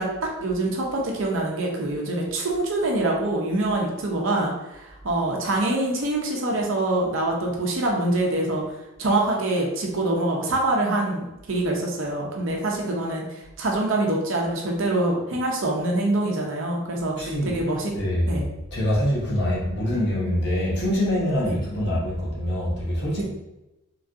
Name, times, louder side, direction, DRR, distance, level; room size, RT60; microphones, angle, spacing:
voice 1, 0.0-8.6 9.0-17.9 18.3-18.4 21.5-21.6 23.2-23.3, right 2 dB, 65° right, -1 dB, 0.6 m, -25 dB
voice 2, 17.2-17.6 17.9-18.4 18.7-23.2, left 1 dB, 50° left, -5 dB, 0.9 m, -24 dB
3.0 x 2.7 x 2.5 m, 0.96 s
head